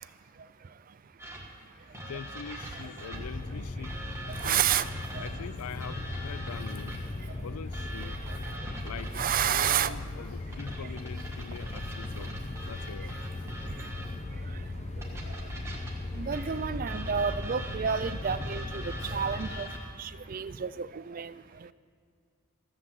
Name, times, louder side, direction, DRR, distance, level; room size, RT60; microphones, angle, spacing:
sound 1, 1.2-3.4 3.8-7.2 7.7-9.8 10.5-14.3 15.0-19.9, right 1 dB, 10° right, 1.7 m, -42 dB
voice 1, 1.9-3.9 4.4-7.0 7.4-8.3 8.8-9.1 9.4-12.3 12.7-13.5 13.8-13.9 17.0-17.1 18.9-19.1, left 7 dB, 80° left, 18 dB, 0.4 m, -44 dB
sound 2, 3.1-19.6, left 2 dB, 30° left, 0.5 m, -38 dB
voice 2, 4.3-5.3 8.0-8.1 9.1-10.0 16.1-19.7 20.0-21.4, right 8 dB, 40° right, 15 dB, 0.4 m, -30 dB
14.5 x 7.4 x 7.8 m, 2.3 s
head